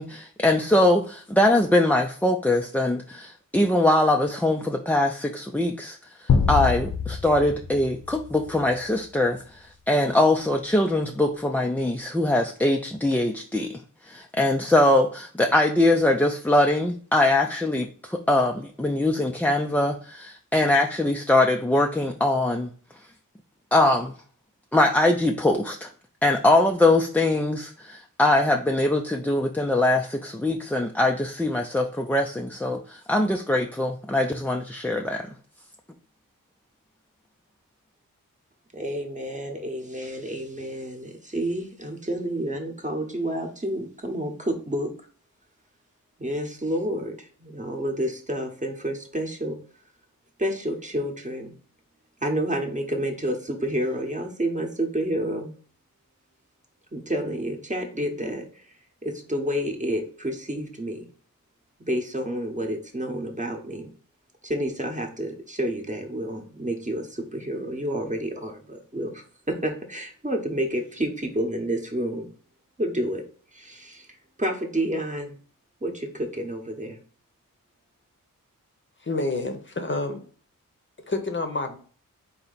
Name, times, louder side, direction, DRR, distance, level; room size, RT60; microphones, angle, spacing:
voice 1, 0.0-6.0 6.5-13.8 14.1-22.7 23.7-24.1 24.7-25.9 26.2-35.3, left 1 dB, 5° left, 3 dB, 0.3 m, -22 dB
sound 1, 6.3-8.8, left 5 dB, 75° left, 0.8 m, -25 dB
voice 2, 38.7-44.9 46.2-49.6 50.4-51.5 52.2-55.5 56.9-58.6 59.0-61.1 61.8-63.9 64.4-72.3 72.8-73.2 73.5-75.4 75.8-77.0, right 1 dB, 20° right, 3 dB, 0.9 m, -29 dB
voice 3, 79.0-80.2 81.1-81.8, left 2 dB, 35° left, 5 dB, 0.7 m, -28 dB
4.2 x 2.8 x 3.9 m, 0.43 s
wide cardioid pair, 80°, 34 cm